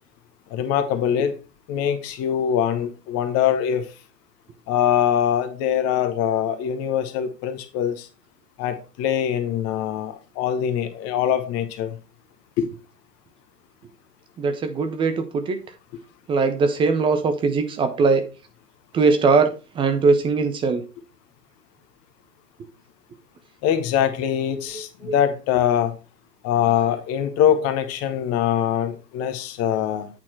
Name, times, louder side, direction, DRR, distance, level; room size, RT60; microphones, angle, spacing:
voice 1, 0.5-1.3 1.7-3.8 4.7-8.1 8.6-12.0 12.6-12.7 23.6-25.9 26.4-30.1, left 9 dB, 30° left, 10 dB, 1.1 m, -23 dB
voice 2, 14.4-15.6 16.3-18.3 18.9-20.8 24.7-25.1 26.5-27.0, right 4 dB, 10° right, 8 dB, 0.5 m, -21 dB
8.7 x 4.3 x 4.4 m, 0.32 s
hypercardioid pair, 110°, 48 cm